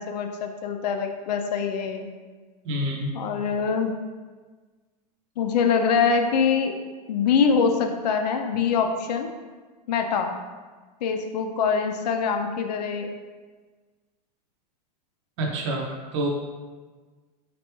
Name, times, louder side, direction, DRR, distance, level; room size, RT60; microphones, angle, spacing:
voice 1, 0.0-2.1 3.1-3.9 5.4-6.8 7.1-9.3 9.9-10.3 11.0-13.1, left 6 dB, 75° left, 5 dB, 0.5 m, -24 dB
voice 2, 2.6-3.1 15.4-16.3, right 1 dB, 40° right, 0 dB, 0.6 m, -27 dB
5.3 x 3.3 x 3.0 m, 1.4 s
supercardioid pair, 175°, 21 cm